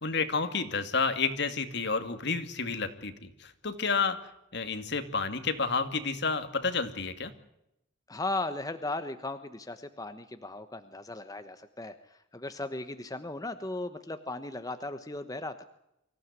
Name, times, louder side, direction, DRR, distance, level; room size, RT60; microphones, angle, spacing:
voice 1, 0.0-4.2 4.5-7.3, left 4 dB, 60° left, 9 dB, 2.4 m, -30 dB
voice 2, 8.1-11.9 12.3-15.5, left 2 dB, 20° left, 9 dB, 1.2 m, -36 dB
25.0 x 15.5 x 9.7 m, 0.83 s
head